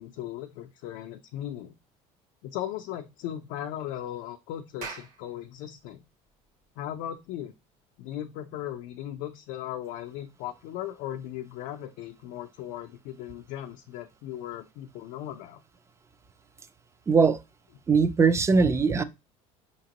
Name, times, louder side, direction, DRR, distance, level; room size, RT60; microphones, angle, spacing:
voice 1, 0.0-1.7 2.4-6.0 6.8-7.5 8.0-15.6, left 12 dB, 75° left, 0.4 m, -37 dB
Clapping, 4.8-9.5, right 5 dB, 60° right, 1.1 m, -47 dB
voice 2, 17.1-17.4 17.9-19.0, right 5 dB, 20° right, 0.3 m, -21 dB
5.0 x 2.9 x 2.8 m
supercardioid pair, 110°, 16 cm